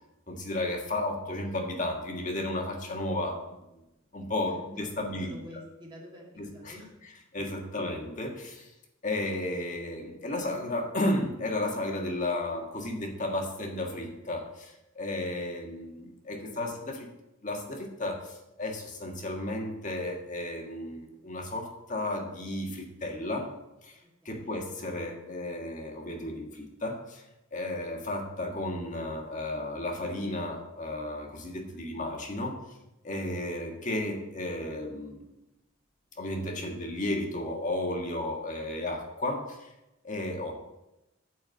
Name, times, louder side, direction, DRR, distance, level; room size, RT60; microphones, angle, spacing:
voice 1, 0.3-3.6 4.1-5.3 6.4-6.7 7.3-8.7 9.0-17.1 17.4-23.5 23.8-24.0 24.2-27.2 27.5-32.6 33.0-35.2 36.2-39.7 40.0-40.5, left 1 dB, 40° left, 2 dB, 1.6 m, -33 dB
voice 2, 4.5-4.9 5.2-6.9 16.4-16.6 24.0-24.6, left 1 dB, 25° right, -3 dB, 2.1 m, -48 dB
9.4 x 4.7 x 7.7 m, 0.92 s
head